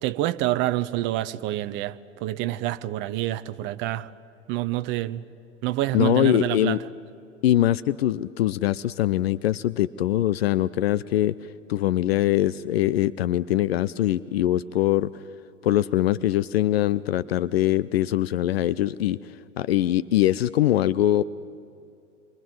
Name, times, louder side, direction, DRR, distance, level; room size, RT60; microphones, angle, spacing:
voice 1, 0.0-4.1 4.5-5.2 5.6-6.8, right 15 dB, 30° right, 0.8 m, -27 dB
voice 2, 5.9-6.8 7.4-11.3 11.7-15.1 15.6-19.2 19.6-21.2, left 13 dB, 55° left, 0.6 m, -22 dB
27.5 x 23.5 x 7.8 m
figure-of-eight pair, 100°, 37 cm